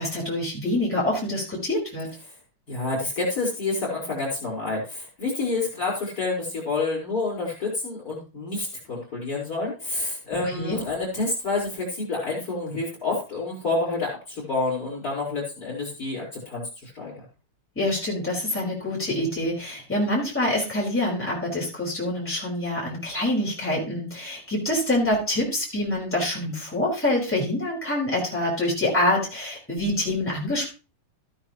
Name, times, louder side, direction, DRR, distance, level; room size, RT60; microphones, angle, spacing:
voice 1, 0.0-2.1 10.4-10.8 17.7-30.7, left 1 dB, 5° left, -4 dB, 5.1 m, -26 dB
voice 2, 2.7-17.1, left 3 dB, 45° left, -3 dB, 5.6 m, -28 dB
14.5 x 9.4 x 3.1 m, 0.33 s
omnidirectional pair, 2.3 m